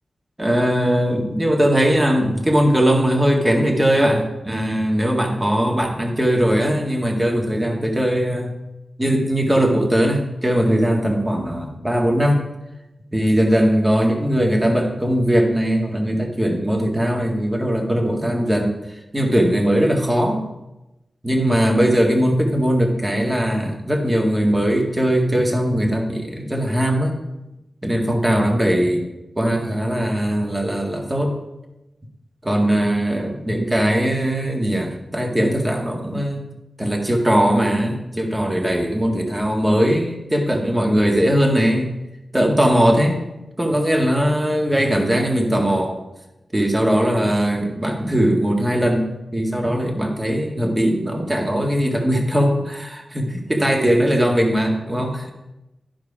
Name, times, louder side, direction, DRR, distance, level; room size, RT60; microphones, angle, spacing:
voice 1, 0.4-8.5 9.0-12.5 13.1-20.4 21.2-27.2 27.8-29.0 29.4-31.4 32.4-36.4 36.8-41.9 42.3-43.2 43.6-46.0 46.5-55.3, equal, 20° right, 1 dB, 1.8 m, -20 dB
11.0 x 4.9 x 4.9 m, 0.96 s
cardioid pair, 65°, 0 cm